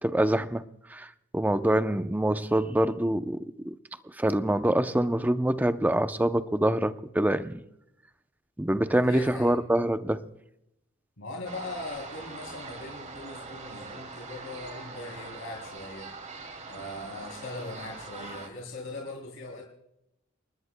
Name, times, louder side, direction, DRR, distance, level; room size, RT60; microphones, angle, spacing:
voice 1, 0.0-0.6 0.9-3.7 4.2-7.6 8.6-10.2, right 1 dB, 10° right, 10 dB, 0.6 m, -25 dB
voice 2, 8.9-9.5 11.2-16.1 16.7-19.6, left 2 dB, 75° left, 0 dB, 3.2 m, -40 dB
sound 1, 11.4-18.5, right 3 dB, 35° right, 2.5 m, -42 dB
29.0 x 19.0 x 2.2 m, 0.82 s
head